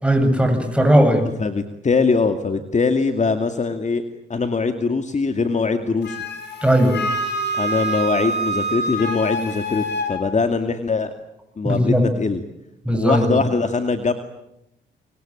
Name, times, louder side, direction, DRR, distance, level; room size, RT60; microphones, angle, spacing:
voice 1, 0.0-1.3 6.6-7.0 11.6-12.0 12.9-13.3, equal, 5° right, 6 dB, 7.9 m, -17 dB
voice 2, 1.4-4.0 4.3-6.2 7.6-11.1 11.6-12.4 12.9-14.1, left 4 dB, 35° left, 7 dB, 2.4 m, -22 dB
Wind instrument woodwind instrument, 6.0-10.1, right 1 dB, 60° left, 6.5 m, -26 dB
25.0 x 24.5 x 9.0 m, 0.82 s
supercardioid pair, 65°, 20 cm